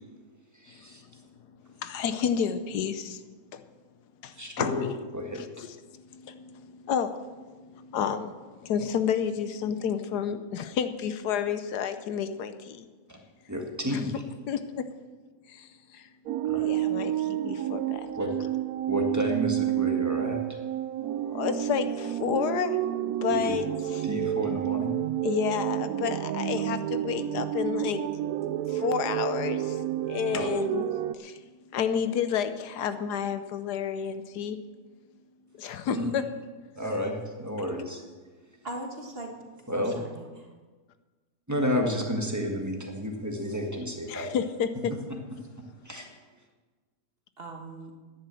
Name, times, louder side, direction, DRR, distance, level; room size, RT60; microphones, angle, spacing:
voice 1, 0.6-1.0 4.4-4.8 5.1-5.4 13.1-13.2 13.5-14.2 16.4-16.6 18.2-18.3 18.9-20.4 23.3-23.6 24.0-25.0 30.3-30.5 35.9-36.1 36.8-38.0 39.7-39.9 41.5-44.3 45.8-46.1, equal, 10° right, 1 dB, 1.5 m, -31 dB
voice 2, 1.8-3.2 3.5-3.6 4.2-5.0 5.3-5.7 6.1-7.3 7.7-8.3 8.6-12.9 13.9-14.0 14.5-14.8 15.5-16.1 16.6-18.0 21.3-24.1 25.2-28.1 28.7-30.9 31.1-31.4 31.7-34.6 35.6-36.2 44.1-44.9, left 8 dB, 75° left, 11 dB, 1.3 m, -30 dB
sound 1, 16.3-31.1, right 12 dB, 70° right, 0.9 m, -30 dB
voice 3, 38.6-39.3 39.7-40.5 47.4-47.9, right 2 dB, 35° right, 2 dB, 1.6 m, -39 dB
10.5 x 10.0 x 7.6 m, 1.4 s
omnidirectional pair, 1.8 m